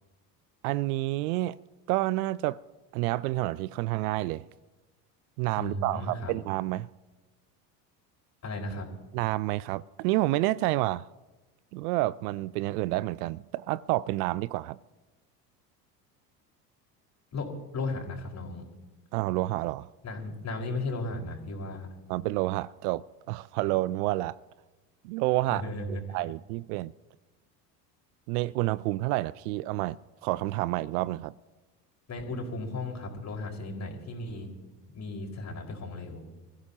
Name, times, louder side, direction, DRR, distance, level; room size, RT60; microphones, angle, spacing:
voice 1, 0.6-1.6 1.9-2.6 2.9-4.5 5.4-6.9 9.1-11.1 11.7-14.8 19.1-19.9 22.1-24.4 25.0-26.9 28.3-31.3, right 18 dB, 65° right, 0.6 m, -29 dB
voice 2, 5.6-6.3 8.4-8.9 17.3-18.7 20.0-21.9 25.5-26.2 32.1-34.5 34.9-36.2, left 2 dB, 35° left, 4.8 m, -35 dB
29.5 x 15.5 x 2.9 m
hypercardioid pair, 75°, 48 cm